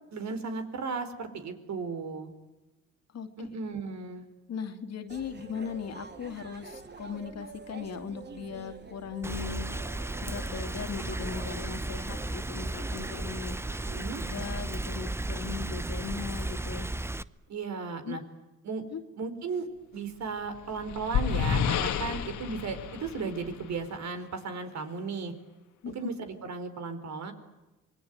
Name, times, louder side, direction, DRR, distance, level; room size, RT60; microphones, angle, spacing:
voice 1, 0.1-2.3 3.4-4.2 13.7-14.2 17.5-18.2 18.6-18.8 19.2-19.7 19.9-25.3 25.9-27.3, right 4 dB, 65° right, 8 dB, 4.5 m, -35 dB
voice 2, 3.1-3.5 4.5-9.7 10.2-13.6 14.3-16.9 18.0-18.2 18.9-19.0 25.8-25.9, left 6 dB, 60° left, 7 dB, 2.7 m, -38 dB
sound 1, 5.1-13.9, right 4 dB, 35° right, 3.0 m, -47 dB
Rain, 9.2-17.2, right 2 dB, 10° right, 0.8 m, -34 dB
sound 2, 20.3-24.0, left 7 dB, 75° left, 2.2 m, -30 dB
27.0 x 21.5 x 9.6 m, 1.1 s
cardioid pair, 90°, 30 cm